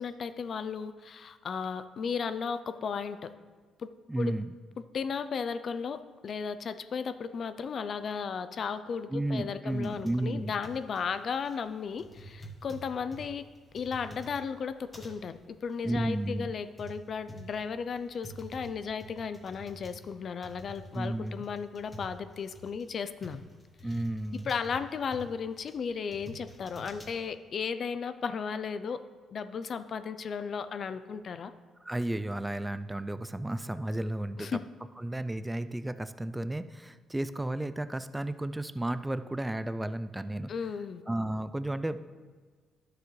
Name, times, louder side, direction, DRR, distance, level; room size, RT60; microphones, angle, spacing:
voice 1, 0.0-3.3 3.8-3.9 4.2-4.3 4.9-13.5 13.7-23.4 24.4-29.0 29.3-31.5 34.4-34.6 40.5-41.0, left 6 dB, 55° left, 12 dB, 0.5 m, -35 dB
voice 2, 4.1-4.5 9.1-10.6 15.8-16.5 20.9-21.4 23.8-24.5 31.8-34.6 35.0-40.5 41.1-42.0, right 1 dB, 10° right, 12 dB, 0.4 m, -33 dB
sound 1, 9.7-27.2, right 1 dB, 20° left, 1.5 m, -49 dB
11.0 x 6.8 x 3.2 m, 1.5 s
cardioid pair, 90°, 0 cm